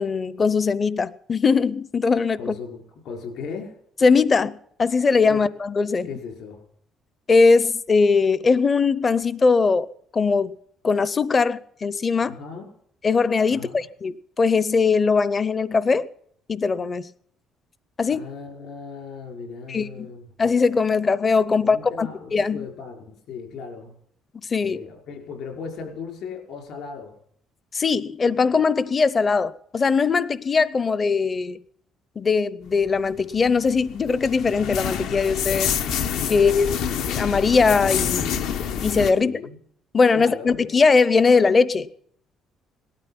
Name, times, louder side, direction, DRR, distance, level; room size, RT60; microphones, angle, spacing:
voice 1, 0.0-2.5 4.0-6.1 7.3-9.9 10.1-10.5 10.8-12.4 13.0-16.1 16.5-17.1 18.0-18.2 19.7-20.1 20.4-22.7 24.5-24.8 27.7-31.6 32.2-35.7 36.3-36.8 37.1-38.4 38.8-39.4 39.9-41.9, left 4 dB, 25° left, 0.7 m, -20 dB
voice 2, 2.4-3.8 5.3-5.5 6.0-6.6 12.2-12.7 13.5-13.8 18.1-20.3 21.6-23.9 24.6-27.2 36.3-36.8 39.2-39.6 40.1-40.8, left 5 dB, 65° left, 5.4 m, -37 dB
sound 1, 33.2-39.1, left 8 dB, 80° left, 1.6 m, -27 dB
19.0 x 13.0 x 5.9 m
cardioid pair, 160°, 0 cm